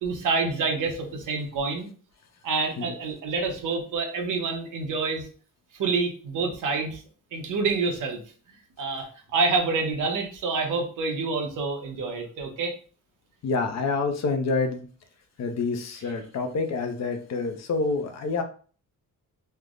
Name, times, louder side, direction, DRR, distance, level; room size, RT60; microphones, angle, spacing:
voice 1, 0.0-1.9 2.4-5.3 5.8-7.0 7.3-8.2 8.8-12.7, right 4 dB, 70° right, 3 dB, 0.9 m, -27 dB
voice 2, 13.4-14.9 15.4-18.4, left 4 dB, 55° left, 6 dB, 0.6 m, -27 dB
3.3 x 2.0 x 3.6 m, 0.41 s
wide cardioid pair, 170°, 33 cm